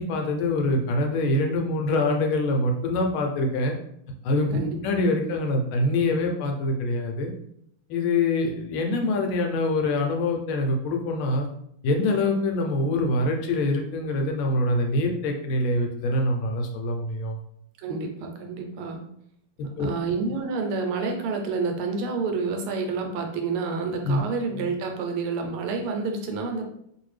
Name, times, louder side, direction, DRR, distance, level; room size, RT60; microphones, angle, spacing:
voice 1, 0.0-3.8 4.2-4.6 4.8-7.3 7.9-11.5 11.8-17.4 19.8-19.9 24.0-24.2, left 2 dB, 80° left, 2 dB, 1.4 m, -24 dB
voice 2, 17.8-19.0 19.8-26.7, right 4 dB, 80° right, 3 dB, 1.5 m, -29 dB
3.3 x 2.5 x 3.2 m, 0.73 s
omnidirectional pair, 2.4 m